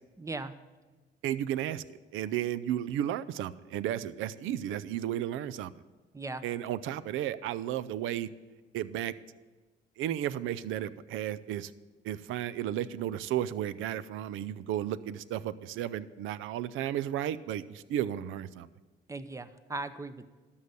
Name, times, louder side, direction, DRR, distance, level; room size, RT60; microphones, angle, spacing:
voice 1, 0.2-0.5 6.1-6.4 19.1-20.3, right 3 dB, 15° right, 12 dB, 0.7 m, -38 dB
voice 2, 1.2-1.8 2.1-5.7 6.4-8.3 8.7-9.1 10.0-11.7 12.0-18.7, right 11 dB, 90° right, 17 dB, 0.5 m, -33 dB
13.0 x 5.6 x 8.1 m, 1.3 s
cardioid pair, 90°, 20 cm